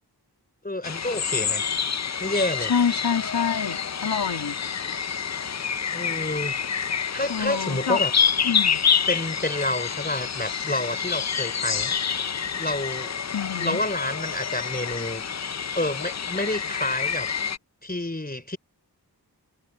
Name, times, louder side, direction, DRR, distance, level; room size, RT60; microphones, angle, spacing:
voice 1, 0.6-1.7 2.2-2.7 5.9-6.6 7.1-8.1 9.1-12.0 12.5-13.2 13.6-15.2 15.8-17.3 17.8-18.6, left 1 dB, 25° left, 4.1 m, -29 dB
sound 1, 0.8-17.6, left 7 dB, 45° left, 0.5 m, -27 dB
voice 2, 2.6-4.6 7.3-8.0 8.4-8.8 13.3-13.8, left 7 dB, 80° left, 1.9 m, -26 dB
wide cardioid pair, 45°, 40 cm